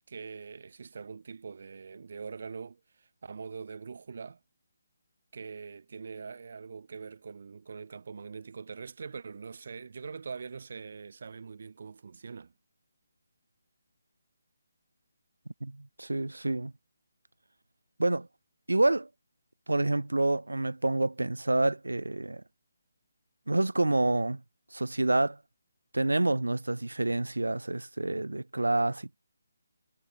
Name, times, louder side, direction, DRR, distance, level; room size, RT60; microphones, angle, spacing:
voice 1, 0.1-4.4 5.3-12.5, right 5 dB, 55° right, 0.9 m, -43 dB
voice 2, 15.6-16.7 18.0-18.3 18.7-19.1 19.7-22.4 23.5-24.4 24.7-25.4 25.9-29.2, right 2 dB, 85° right, 0.4 m, -28 dB
figure-of-eight pair, 150°, 0 cm